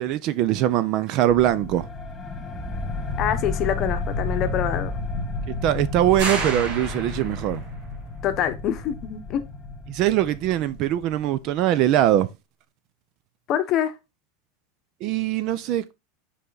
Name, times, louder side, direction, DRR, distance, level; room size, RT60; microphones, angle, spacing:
voice 1, 0.0-1.9 5.5-7.6 9.9-12.3 15.0-15.9, right 12 dB, 45° right, 0.5 m, -22 dB
sound 1, 1.3-11.5, left 2 dB, 15° left, 1.9 m, -32 dB
voice 2, 3.2-4.9 8.2-9.4 13.5-13.9, left 10 dB, 40° left, 0.8 m, -25 dB
sound 2, 6.2-7.7, right 3 dB, 80° right, 2.8 m, -30 dB
5.5 x 4.9 x 3.9 m
supercardioid pair, 145°, 0 cm